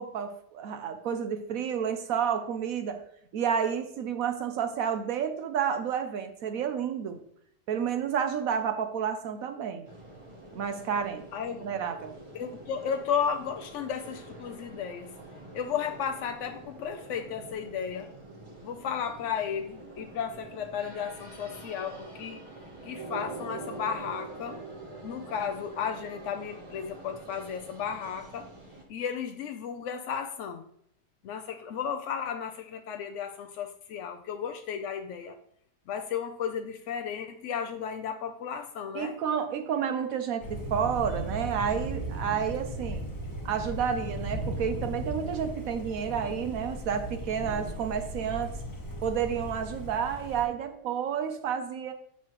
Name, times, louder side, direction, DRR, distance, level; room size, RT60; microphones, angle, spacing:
voice 1, 0.0-3.0 3.3-7.2 7.7-9.9 10.5-11.2 11.6-12.1 38.9-43.0 43.4-48.5 49.0-51.9, right 7 dB, 70° right, 8 dB, 0.9 m, -30 dB
sound 1, 9.8-28.8, right 2 dB, 30° right, 0.6 m, -45 dB
voice 2, 11.3-11.7 12.3-15.1 15.5-18.1 18.6-22.5 22.8-24.6 25.0-28.5 28.9-30.6 31.2-35.4 35.9-39.2, left 7 dB, 80° left, 6 dB, 0.6 m, -34 dB
Thunder, 40.4-50.4, right 1 dB, 15° left, 1.1 m, -37 dB
7.4 x 5.7 x 3.0 m, 0.67 s
omnidirectional pair, 1.8 m